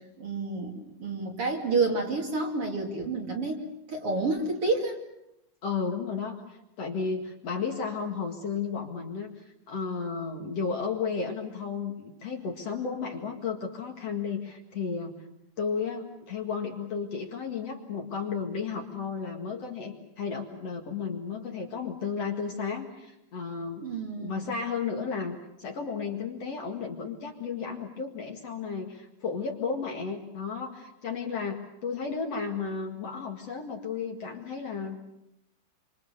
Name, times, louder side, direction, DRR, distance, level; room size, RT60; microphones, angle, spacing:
voice 1, 0.0-5.0 23.8-24.5, right 3 dB, 40° right, 1 dB, 3.3 m, -29 dB
voice 2, 5.6-15.2 15.6-23.8 24.2-35.0, left 5 dB, 50° left, 2 dB, 2.8 m, -33 dB
27.5 x 26.0 x 6.9 m, 0.85 s
omnidirectional pair, 4.2 m